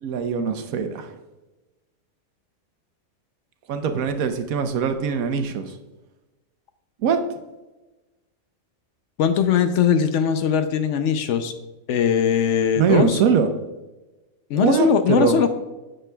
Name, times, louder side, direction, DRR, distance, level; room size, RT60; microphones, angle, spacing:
voice 1, 0.0-1.1 3.7-5.7 7.0-7.4 12.8-13.5 14.5-15.4, right 6 dB, 90° right, 7 dB, 1.2 m, -22 dB
voice 2, 9.2-11.5 11.9-13.2 14.5-15.5, left 7 dB, 70° left, 9 dB, 0.8 m, -20 dB
8.8 x 6.6 x 2.2 m, 1.1 s
omnidirectional pair, 1.4 m